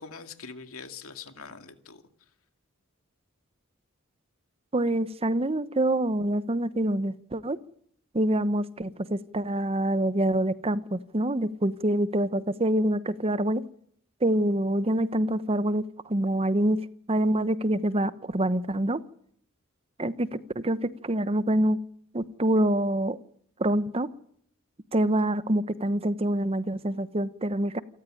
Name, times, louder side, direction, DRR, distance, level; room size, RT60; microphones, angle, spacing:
voice 1, 0.0-2.0, left 5 dB, 80° left, 7 dB, 2.4 m, -43 dB
voice 2, 4.7-7.6 8.1-13.6 14.2-16.8 17.1-19.0 20.0-21.8 22.1-23.2 23.6-24.1 24.9-27.8, right 1 dB, 25° right, 14 dB, 0.9 m, -26 dB
27.5 x 14.0 x 10.0 m, 0.69 s
head